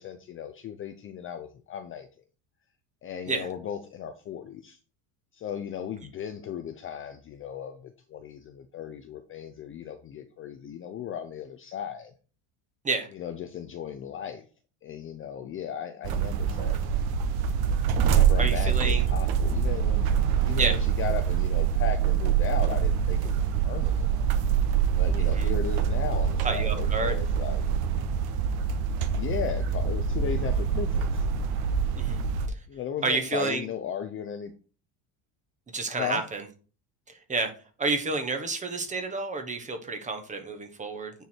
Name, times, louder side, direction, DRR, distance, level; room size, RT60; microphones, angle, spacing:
voice 1, 0.0-2.1 3.0-4.8 5.3-12.1 13.1-14.4 14.8-17.0 18.0-20.1 20.4-24.1 24.9-27.6 29.1-31.3 32.7-34.5 35.9-36.2, left 8 dB, 30° left, 8 dB, 0.5 m, -36 dB
sound 1, 16.0-32.5, right 8 dB, 55° right, 1.0 m, -25 dB
voice 2, 18.4-19.1 20.6-20.8 25.2-25.5 26.4-27.2 32.0-32.2 32.5-32.6 33.0-33.6 35.7-36.4 37.1-37.5 37.8-41.1, right 3 dB, 15° right, 6 dB, 1.1 m, -30 dB
9.3 x 4.7 x 4.5 m, 0.38 s
cardioid pair, 165°, 46 cm